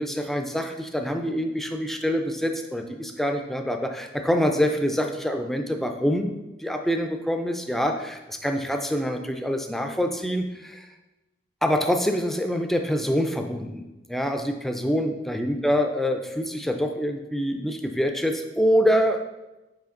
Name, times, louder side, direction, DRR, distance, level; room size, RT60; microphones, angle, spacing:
voice 1, 0.0-10.9 11.6-19.2, equal, ahead, 4 dB, 0.4 m, -25 dB
5.8 x 4.9 x 3.8 m, 1.0 s
head